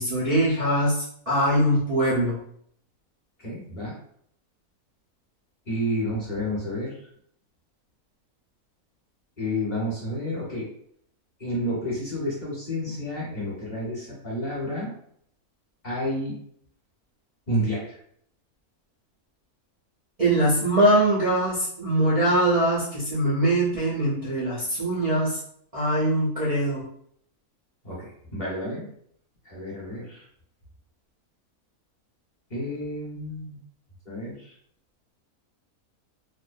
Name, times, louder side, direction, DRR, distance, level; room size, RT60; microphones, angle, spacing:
voice 1, 0.0-2.4 20.2-25.4 25.7-26.8, right 1 dB, 65° right, -7 dB, 0.3 m, -22 dB
voice 2, 3.4-3.9 5.7-7.0 9.4-10.7 11.4-14.9 15.8-16.4 17.5-18.0 27.8-28.9 29.4-30.2 32.5-33.6 34.0-34.5, equal, 35° left, -6 dB, 1.0 m, -30 dB
2.5 x 2.2 x 2.5 m, 0.66 s
omnidirectional pair, 1.6 m